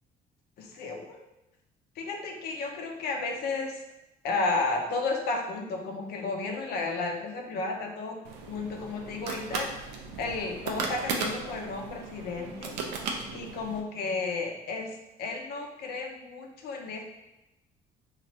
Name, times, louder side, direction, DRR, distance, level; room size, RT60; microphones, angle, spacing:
voice 1, 0.6-1.2 2.0-3.8 4.2-8.2 8.5-9.7 10.2-12.8 13.3-17.0, left 3 dB, 70° left, 2 dB, 0.6 m, -33 dB
sound 1, 8.2-13.8, right 4 dB, 85° right, 0.5 m, -36 dB
3.0 x 2.5 x 2.7 m, 0.94 s
cardioid pair, 110°, 17 cm